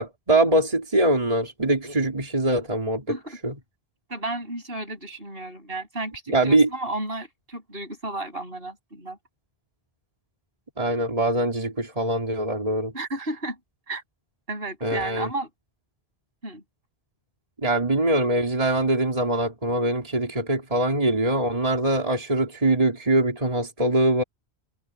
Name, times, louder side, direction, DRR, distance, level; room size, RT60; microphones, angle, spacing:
voice 1, 0.0-3.2 3.4-3.5 6.3-6.7 10.8-12.9 14.8-15.3 17.6-24.2, right 1 dB, 35° right, 3.3 m, -23 dB
voice 2, 4.1-9.2 12.9-13.6 13.9-14.0 14.5-15.5 16.4-16.6, right 2 dB, 60° right, 8.3 m, -33 dB
omnidirectional pair, 1.1 m